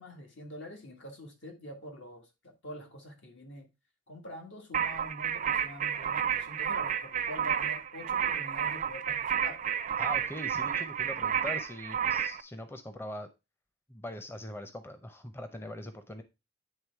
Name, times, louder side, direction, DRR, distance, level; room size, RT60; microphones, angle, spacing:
voice 1, 0.0-3.7 4.1-9.7, left 1 dB, 80° left, 1.8 m, -45 dB
sound 1, 4.7-12.4, right 8 dB, 45° right, 0.4 m, -31 dB
voice 2, 10.0-13.3 13.9-16.2, left 1 dB, 15° left, 0.6 m, -41 dB
9.1 x 3.4 x 4.6 m
head